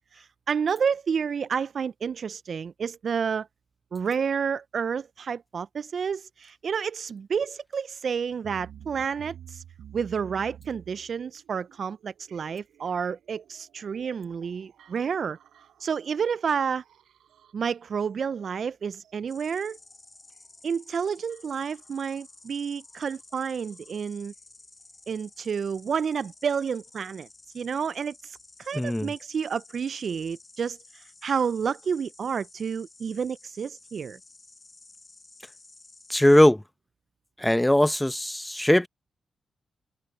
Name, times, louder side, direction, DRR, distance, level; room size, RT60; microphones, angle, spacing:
voice 1, 0.1-3.5 3.9-9.6 9.9-15.4 15.8-16.8 17.5-19.8 20.6-24.3 25.1-27.3 27.5-34.2, right 6 dB, 60° right, 0.5 m, -30 dB
sound 1, 8.3-24.2 25.4-25.5 26.3-26.4 27.1-27.2, right 10 dB, 75° right, 7.6 m, -53 dB
Insect, 19.3-36.4, left 3 dB, 35° left, 6.4 m, -53 dB
voice 2, 28.7-29.1 36.1-36.6 37.4-38.9, left 1 dB, 10° left, 0.9 m, -20 dB
open air
hypercardioid pair, 40°, 0 cm